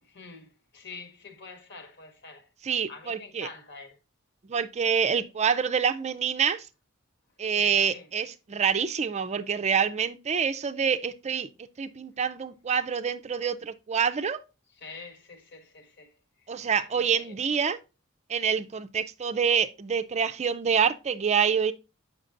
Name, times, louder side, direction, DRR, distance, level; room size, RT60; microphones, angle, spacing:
voice 1, 0.0-2.5 2.9-4.0 7.4-8.1 14.8-16.5 16.8-17.4, left 4 dB, 55° left, 1.4 m, -46 dB
voice 2, 2.6-3.5 4.5-6.7 7.4-11.5 11.8-14.4 16.5-17.8 18.3-21.7, right 7 dB, 35° right, 0.4 m, -26 dB
7.6 x 5.9 x 2.5 m
head